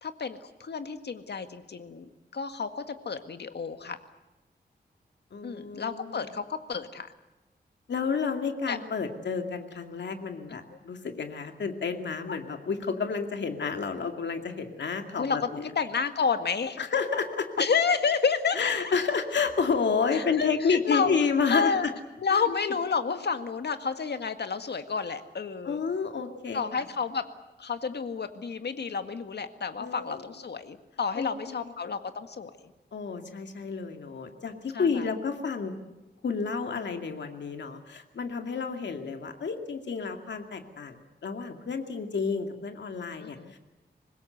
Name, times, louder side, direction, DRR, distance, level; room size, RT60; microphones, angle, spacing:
voice 1, 0.0-4.0 5.4-7.1 8.7-8.8 10.7-10.8 12.3-12.4 15.1-16.8 17.6-18.7 20.1-21.1 21.5-21.9 22.2-25.8 26.5-27.2 27.6-32.7 34.7-35.1 43.2-43.5, left 5 dB, 70° left, 9 dB, 1.8 m, -30 dB
voice 2, 5.3-6.2 7.9-15.4 16.8-17.5 18.5-21.9 22.3-22.4 25.6-26.6 29.8-30.2 31.1-31.7 32.9-35.7 36.2-41.0 41.2-43.6, left 5 dB, 90° left, 6 dB, 2.4 m, -30 dB
25.0 x 20.5 x 8.0 m, 1.1 s
wide cardioid pair, 125°, 18 cm